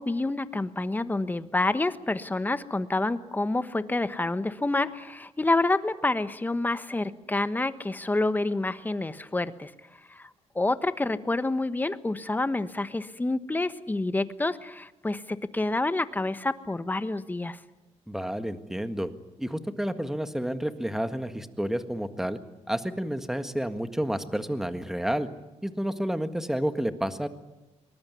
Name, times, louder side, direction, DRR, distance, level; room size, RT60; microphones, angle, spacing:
voice 1, 0.0-9.7 10.1-10.3 10.5-17.6, left 2 dB, 15° left, 12 dB, 1.3 m, -28 dB
voice 2, 18.1-19.1 19.4-22.4 22.7-25.3 25.6-27.3, equal, 5° right, 9 dB, 1.7 m, -30 dB
23.0 x 19.5 x 9.7 m, 1.0 s
cardioid pair, 105°, 12 cm